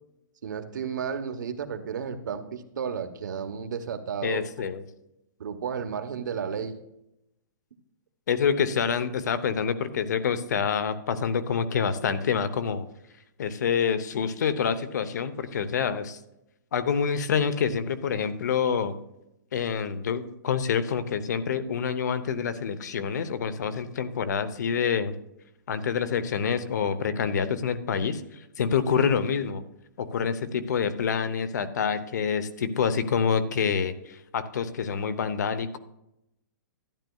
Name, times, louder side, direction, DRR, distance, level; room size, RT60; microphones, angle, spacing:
voice 1, 0.4-4.7 5.4-6.8, right 7 dB, 65° right, 7 dB, 1.1 m, -33 dB
voice 2, 4.2-4.8 8.3-12.9 13.4-16.2 16.7-18.9 19.5-25.1 25.7-29.6 30.0-35.8, left 6 dB, 60° left, 13 dB, 0.8 m, -27 dB
12.0 x 10.5 x 2.3 m, 0.85 s
hypercardioid pair, 175°, 11 cm